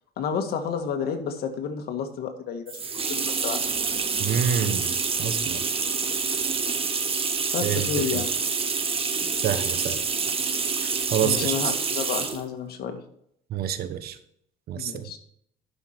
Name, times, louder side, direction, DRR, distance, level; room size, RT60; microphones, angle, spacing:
voice 1, 0.2-2.7 3.1-3.6 7.5-8.3 11.2-13.0 14.8-15.2, left 6 dB, 65° left, 5 dB, 1.9 m, -30 dB
sound 1, 2.7-12.5, right 5 dB, 35° right, 1.6 m, -27 dB
voice 2, 4.2-4.9 5.2-5.6 7.6-8.2 9.4-10.0 10.8-11.7 13.5-14.2 14.7-15.0, right 9 dB, 65° right, 11 dB, 1.1 m, -27 dB
12.0 x 5.7 x 4.5 m, 0.71 s
cardioid pair, 110°, 17 cm